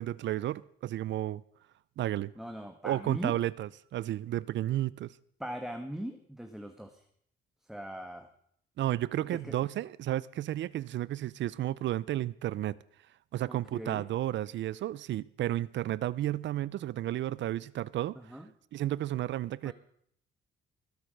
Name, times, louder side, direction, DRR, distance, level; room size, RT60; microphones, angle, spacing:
voice 1, 0.0-1.4 2.0-2.3 2.8-5.1 8.8-12.8 13.3-18.3 18.7-19.7, right 13 dB, 65° right, 0.5 m, -32 dB
voice 2, 2.4-3.4 5.4-7.0 7.7-8.3 9.3-9.5 13.5-14.1 18.1-18.5 19.6-19.7, equal, ahead, 1.4 m, -40 dB
20.0 x 7.9 x 6.5 m
cardioid pair, 90°, 20 cm